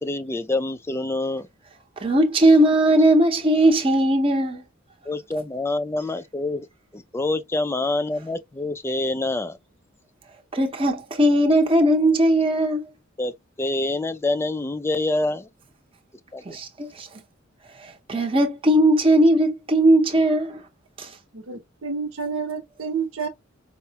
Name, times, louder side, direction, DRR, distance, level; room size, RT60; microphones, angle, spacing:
voice 1, 0.0-1.5 5.1-6.7 6.9-9.6 13.2-13.3 13.6-15.5 16.3-16.4, left 2 dB, 10° left, 0.3 m, -26 dB
voice 2, 2.0-4.6 10.5-12.8 16.5-17.1 18.1-20.6 21.0-21.1, right 1 dB, 25° right, 0.7 m, -18 dB
voice 3, 21.3-23.3, right 5 dB, 80° right, 0.9 m, -29 dB
4.6 x 2.1 x 2.8 m
head